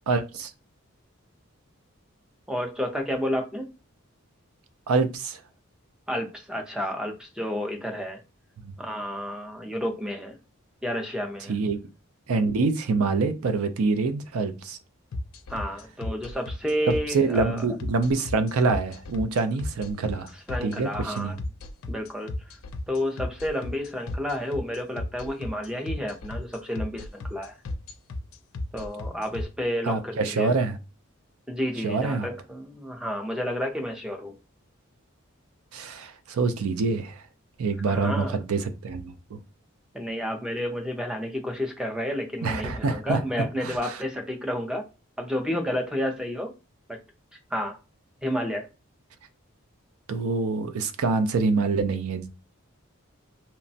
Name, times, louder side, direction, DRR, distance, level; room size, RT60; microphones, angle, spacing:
voice 1, 0.1-0.5 4.9-5.4 8.6-8.7 11.5-11.8 12.3-14.8 16.9-20.3 20.6-21.3 29.8-30.8 31.8-32.3 35.7-37.2 37.6-39.4 42.4-43.2 43.6-44.0 50.1-52.3, right 4 dB, 90° right, 0.4 m, -26 dB
voice 2, 2.5-3.7 6.1-8.2 8.8-10.4 10.8-11.6 15.5-17.7 20.5-21.4 21.9-22.3 22.9-27.6 28.7-30.6 31.5-34.3 37.9-38.4 39.9-44.8 45.2-46.5 46.9-47.0 47.5-47.8 48.2-48.7, equal, 5° right, 0.4 m, -30 dB
sound 1, 15.1-29.4, left 2 dB, 75° left, 0.4 m, -33 dB
2.8 x 2.1 x 2.7 m
head